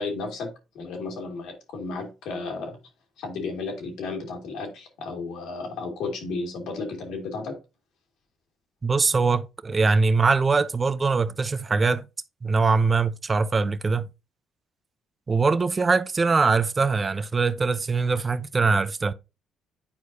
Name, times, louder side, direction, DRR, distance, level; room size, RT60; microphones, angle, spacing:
voice 1, 0.0-2.8 3.2-7.6, left 3 dB, 75° left, 2.3 m, -33 dB
voice 2, 8.8-12.1 12.4-14.1 15.3-19.1, right 4 dB, 30° right, 0.6 m, -22 dB
9.9 x 4.6 x 2.7 m
supercardioid pair, 70°, 0 cm